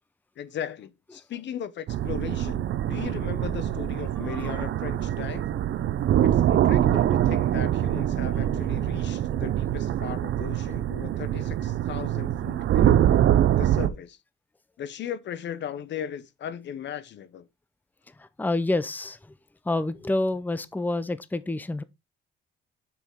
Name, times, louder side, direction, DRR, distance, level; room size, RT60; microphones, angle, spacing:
voice 1, 0.4-5.4 6.2-13.1 13.5-14.2 14.8-17.5, left 9 dB, 65° left, 0.8 m, -37 dB
sound 1, 1.9-13.9, right 11 dB, 70° right, 0.6 m, -24 dB
voice 2, 18.4-19.2 19.7-21.8, left 2 dB, 10° left, 0.7 m, -28 dB
7.1 x 6.0 x 3.6 m
cardioid pair, 90°, 20 cm